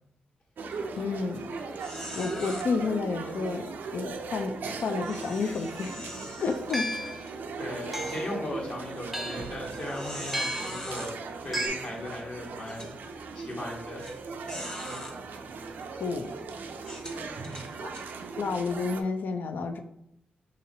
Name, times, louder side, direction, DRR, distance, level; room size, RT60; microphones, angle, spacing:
sound 1, 0.6-19.0, right 4 dB, 75° right, 0.4 m, -38 dB
sound 2, 0.7-1.0 1.3-1.4 1.8-2.6 5.0-7.3 7.8-8.0 8.6-8.7 9.7-11.1 12.0-12.1 12.6-12.9 14.0-14.1 14.5-15.1 15.8-16.0 16.8-18.1, left 1 dB, 25° left, 1.0 m, -41 dB
voice 1, 1.0-1.5 2.1-6.0 6.4-7.1 16.0-16.3 17.8-17.9 18.4-19.8, left 4 dB, 70° left, 7 dB, 0.4 m, -31 dB
sound 3, 6.7-7.2 7.9-8.4 9.1-9.6 10.3-10.8 11.5-11.7, equal, ahead, 0.6 m, -33 dB
voice 2, 7.6-11.1 11.4-14.1 14.6-14.8 17.1-17.8, left 1 dB, 50° left, -2 dB, 1.3 m, -38 dB
4.9 x 2.7 x 2.7 m, 0.78 s
cardioid pair, 60°, 3 cm